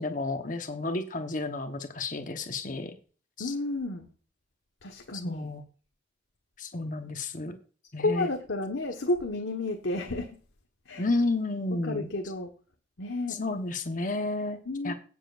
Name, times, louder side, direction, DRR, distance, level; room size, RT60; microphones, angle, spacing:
voice 1, 0.0-2.9 3.4-3.5 5.2-5.6 6.6-7.6 7.9-8.3 11.0-12.1 13.3-14.9, left 2 dB, 40° left, 6 dB, 1.1 m, -31 dB
voice 2, 3.4-4.1 4.8-5.5 8.0-10.4 10.9-11.0 11.8-12.5 13.0-13.4 14.7-14.9, left 2 dB, 80° left, 3 dB, 1.4 m, -31 dB
17.0 x 7.6 x 2.5 m, 0.39 s
head